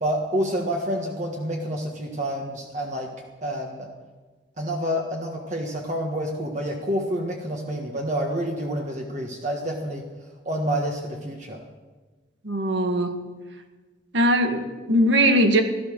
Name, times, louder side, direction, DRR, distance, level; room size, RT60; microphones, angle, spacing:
voice 1, 0.0-3.1 3.4-3.9 4.6-10.0 10.4-11.6, equal, 40° right, 1 dB, 1.6 m, -28 dB
voice 2, 12.4-13.1 14.1-15.6, equal, 75° right, 5 dB, 1.9 m, -20 dB
16.0 x 12.5 x 6.4 m, 1.3 s
head